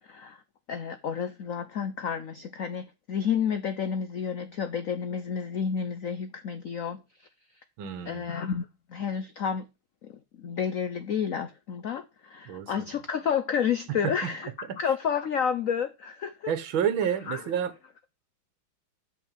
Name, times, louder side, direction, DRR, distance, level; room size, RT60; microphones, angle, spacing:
voice 1, 0.7-7.0 8.1-9.7 10.4-16.5 17.3-17.4, left 7 dB, 75° left, 0.7 m, -30 dB
voice 2, 7.8-8.3 12.5-12.9 14.0-14.1 14.7-14.8 16.5-17.7, right 8 dB, 70° right, 1.8 m, -29 dB
8.0 x 5.8 x 7.3 m
omnidirectional pair, 2.3 m